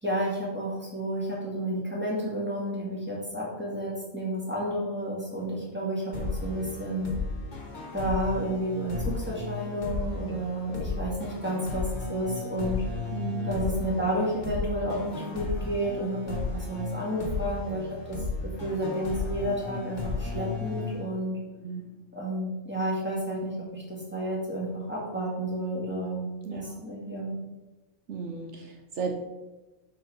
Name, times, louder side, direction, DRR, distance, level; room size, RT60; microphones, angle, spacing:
voice 1, 0.0-7.1 7.9-12.8 13.4-21.4 22.1-27.3, right 1 dB, 10° right, -5 dB, 2.0 m, -31 dB
sound 1, 6.1-21.6, left 3 dB, 35° left, 1.3 m, -34 dB
voice 2, 13.1-13.5 21.6-21.8 26.4-26.8 28.1-29.2, right 5 dB, 65° right, 3 dB, 1.0 m, -34 dB
5.6 x 4.9 x 5.0 m, 1.1 s
omnidirectional pair, 1.4 m